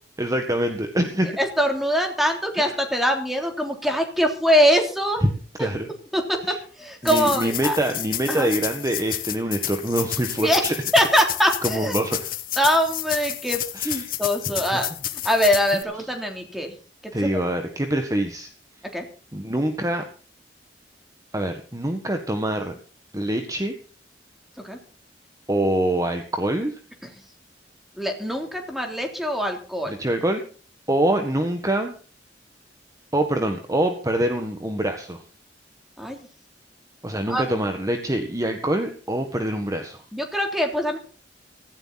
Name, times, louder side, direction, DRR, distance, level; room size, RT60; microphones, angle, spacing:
voice 1, 0.2-1.3 2.6-2.7 5.2-5.3 5.6-5.9 6.5-6.6 7.0-10.7 11.6-12.2 13.7-14.1 14.7-14.8 17.1-18.5 19.3-20.0 21.3-22.8 23.1-23.7 25.5-26.8 29.9-30.4 30.9-31.9 33.1-35.2 37.0-40.0, right 1 dB, 20° right, 5 dB, 1.7 m, -25 dB
voice 2, 1.4-5.2 6.1-6.4 6.8-7.8 8.3-8.5 10.4-10.6 10.9-12.0 12.6-14.9 15.2-16.7 18.9-19.0 24.6-24.8 28.0-29.9 36.0-36.2 37.3-37.4 40.1-41.0, equal, ahead, 3 dB, 3.4 m, -22 dB
sound 1, 7.0-15.8, left 12 dB, 55° left, 1.7 m, -31 dB
17.5 x 15.5 x 4.2 m, 0.39 s
head